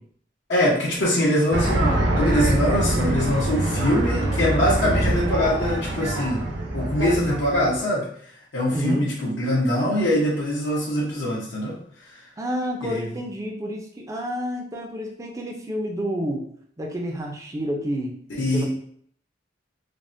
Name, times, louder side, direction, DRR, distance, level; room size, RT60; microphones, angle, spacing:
voice 1, 0.5-6.4 6.7-12.3 12.8-13.1 18.3-18.6, left 1 dB, 80° left, -7 dB, 0.7 m, -23 dB
sound 1, 1.5-7.8, right 1 dB, 75° right, 0.6 m, -24 dB
voice 2, 8.7-9.0 12.4-16.4 16.8-18.2 18.5-18.6, equal, 15° right, 1 dB, 0.4 m, -29 dB
3.4 x 2.0 x 2.5 m, 0.62 s
head